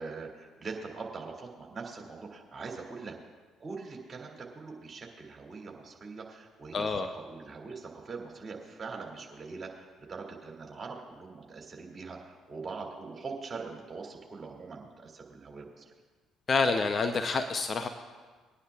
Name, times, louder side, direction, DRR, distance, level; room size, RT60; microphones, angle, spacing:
voice 1, 0.0-3.1 3.6-15.9, right 4 dB, 35° right, 0 dB, 2.7 m, -42 dB
voice 2, 6.7-7.1 16.5-17.9, left 4 dB, 45° left, 7 dB, 0.7 m, -28 dB
22.0 x 10.0 x 2.4 m, 1.4 s
hypercardioid pair, 50°, 0 cm